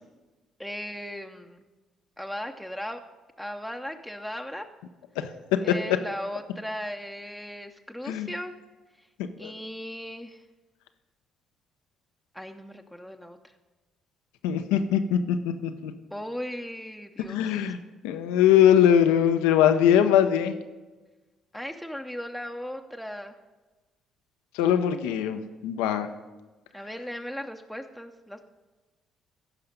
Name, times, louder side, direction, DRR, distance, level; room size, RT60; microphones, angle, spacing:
voice 1, 0.6-1.7 2.2-3.0 3.4-4.7 5.6-8.5 9.4-10.4 12.3-13.4 16.1-17.5 21.5-23.4 26.7-28.5, equal, ahead, 3 dB, 0.8 m, -37 dB
voice 2, 9.2-9.5 14.4-15.9 17.3-17.8 18.0-20.6 24.5-26.1, left 9 dB, 85° left, 9 dB, 0.6 m, -22 dB
15.0 x 5.7 x 5.2 m, 1.2 s
supercardioid pair, 60°, 0 cm